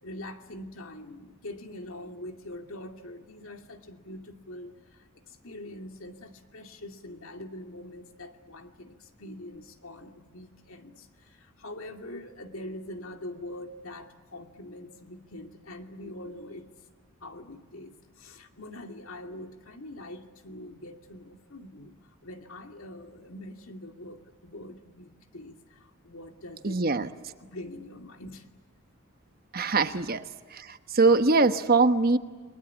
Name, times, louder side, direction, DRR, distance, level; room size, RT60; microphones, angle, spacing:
voice 1, 0.0-16.7 17.2-22.0 22.2-26.8 27.4-28.5, left 1 dB, 70° left, 5 dB, 2.4 m, -43 dB
voice 2, 26.6-27.1 29.5-30.2 30.5-32.2, right 3 dB, 45° right, 9 dB, 1.1 m, -22 dB
29.5 x 22.5 x 8.6 m, 1.4 s
head